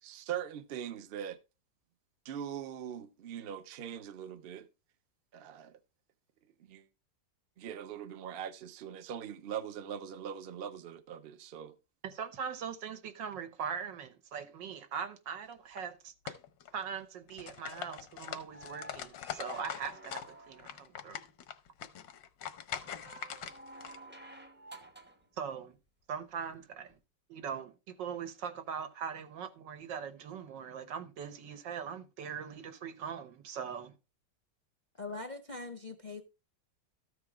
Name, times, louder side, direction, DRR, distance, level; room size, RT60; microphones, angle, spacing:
voice 1, 0.0-1.4 2.2-4.7 5.3-5.8 6.6-6.9 7.6-11.8, right 9 dB, 50° right, 0.7 m, -41 dB
voice 2, 12.0-16.4 16.7-21.2 25.4-25.8 26.1-26.9 27.3-33.9, right 7 dB, 80° right, 1.8 m, -41 dB
sound 1, 15.5-15.8 16.3-17.0 17.3-20.3 20.6-24.0, left 9 dB, 80° left, 1.6 m, -42 dB
sound 2, 18.4-20.9 22.8-25.2 26.9-27.0, right 1 dB, 10° right, 0.5 m, -52 dB
voice 3, 35.0-36.2, left 3 dB, 40° left, 0.6 m, -42 dB
13.5 x 4.7 x 4.8 m
omnidirectional pair, 1.9 m